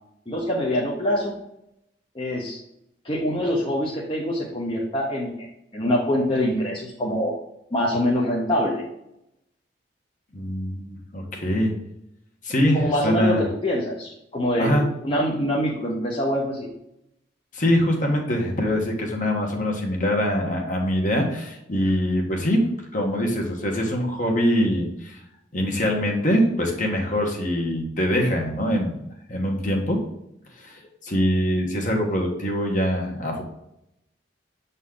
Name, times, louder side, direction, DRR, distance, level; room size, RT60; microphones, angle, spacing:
voice 1, 0.3-1.3 2.1-2.6 3.0-5.5 5.7-7.3 7.7-8.8 12.7-16.7, equal, 30° left, -4 dB, 0.9 m, -24 dB
voice 2, 10.3-11.7 12.4-13.4 14.6-14.8 17.5-22.6 22.9-25.2 25.5-29.0 29.3-30.0 30.6-33.4, equal, 45° left, 1 dB, 1.3 m, -23 dB
7.3 x 4.1 x 3.8 m, 0.81 s
head